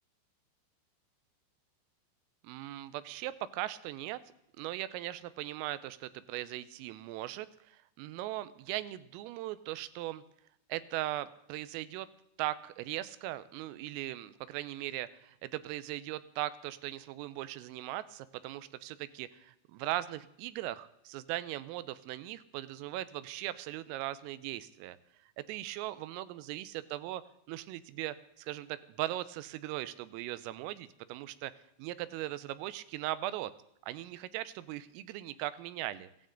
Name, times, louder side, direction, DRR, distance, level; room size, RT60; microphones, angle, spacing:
voice 1, 2.4-4.2 4.6-10.2 10.7-12.1 12.4-25.0 25.4-27.2 27.5-31.5 31.8-33.5 33.9-36.1, right 15 dB, 90° right, 15 dB, 3.3 m, -39 dB
17.0 x 15.5 x 3.9 m, 0.77 s
omnidirectional pair, 5.8 m